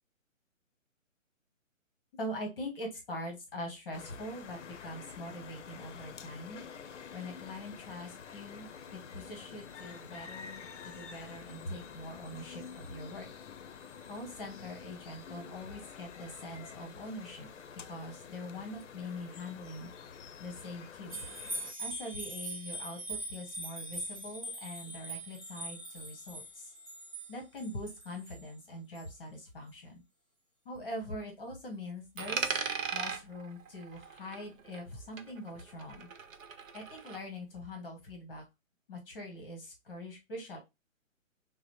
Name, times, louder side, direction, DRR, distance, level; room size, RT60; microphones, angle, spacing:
voice 1, 2.1-6.6 7.1-13.3 14.1-17.5 17.8-19.9 20.4-21.3 21.8-26.7 27.3-30.0 30.6-32.5 32.9-36.1 36.7-38.4 38.9-40.6, left 1 dB, 20° left, 2 dB, 0.9 m, -43 dB
sound 1, 3.9-21.7, left 7 dB, 60° left, 0.6 m, -48 dB
sound 2, 21.1-28.4 29.0-29.1, right 1 dB, 25° right, 0.6 m, -42 dB
Coin (dropping), 32.2-34.9 35.2-37.2, right 5 dB, 75° right, 0.8 m, -38 dB
4.8 x 2.0 x 2.9 m, 0.23 s
hypercardioid pair, 165°, 40 cm